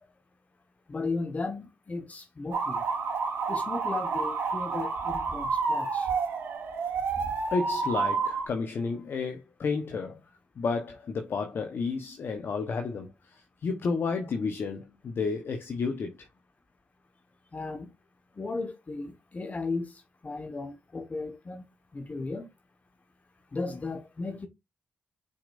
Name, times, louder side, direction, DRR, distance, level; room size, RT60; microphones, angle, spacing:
voice 1, 0.9-2.8 3.5-6.1 17.5-17.9 18.4-19.9 20.2-21.6 21.9-22.5 23.5-24.5, left 3 dB, 40° left, 1.4 m, -35 dB
sound 1, 2.5-8.5, right 4 dB, 90° right, 2.4 m, -29 dB
voice 2, 7.5-10.2 10.6-13.1 13.6-16.1, left 4 dB, 65° left, 1.1 m, -31 dB
6.8 x 5.3 x 2.6 m
cardioid pair, 60°, 4 cm